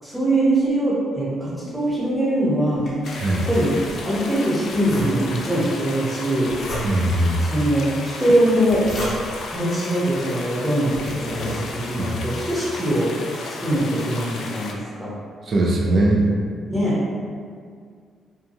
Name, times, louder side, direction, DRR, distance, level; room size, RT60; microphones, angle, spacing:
voice 1, 0.0-2.9 3.5-3.7 4.0-6.5 7.5-8.8 9.5-13.1 13.6-15.1 16.7-17.0, right 1 dB, ahead, -8 dB, 0.9 m, -22 dB
sound 1, 2.5-4.2 4.7-5.6 6.5-7.3 8.4-9.5 10.3-10.4 10.8-12.1, equal, 50° left, 0.8 m, -32 dB
sound 2, 3.0-14.7, left 3 dB, 70° left, 0.3 m, -34 dB
voice 2, 6.8-7.4 12.0-12.2 15.5-16.2, right 1 dB, 45° right, -1 dB, 0.5 m, -20 dB
2.6 x 2.4 x 2.7 m, 2.1 s
cardioid pair, 90°, 0 cm